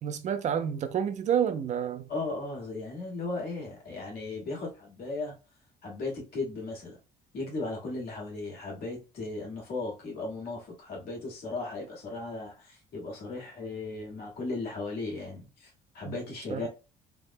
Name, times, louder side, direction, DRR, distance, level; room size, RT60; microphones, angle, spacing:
voice 1, 0.0-2.1 16.1-16.2 16.5-16.7, right 8 dB, 45° right, 0.4 m, -29 dB
voice 2, 2.1-5.4 5.8-7.0 7.3-16.7, left 3 dB, 65° left, 1.5 m, -36 dB
3.4 x 2.1 x 2.5 m
cardioid pair, 110°, 17 cm